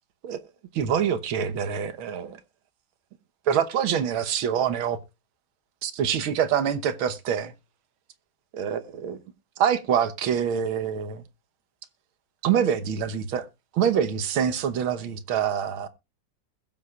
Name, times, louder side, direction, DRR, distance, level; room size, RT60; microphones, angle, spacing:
voice 1, 0.7-2.4 3.5-5.0 5.8-7.5 8.5-9.2 9.6-11.2 12.4-13.5 13.7-15.9, right 8 dB, 75° right, 1.9 m, -25 dB
21.0 x 7.5 x 2.4 m
omnidirectional pair, 2.3 m